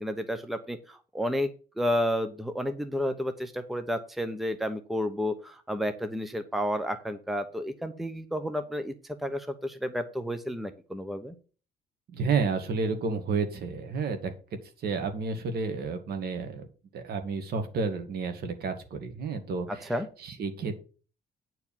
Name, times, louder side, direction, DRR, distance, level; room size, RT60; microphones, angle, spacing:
voice 1, 0.0-1.5 1.8-11.4 19.7-20.1, equal, ahead, 9 dB, 0.8 m, -31 dB
voice 2, 12.1-14.3 14.8-16.7 16.9-19.9 20.2-20.7, right 4 dB, 60° right, 7 dB, 2.0 m, -31 dB
9.4 x 4.7 x 7.2 m, 0.37 s
cardioid pair, 145°, 18 cm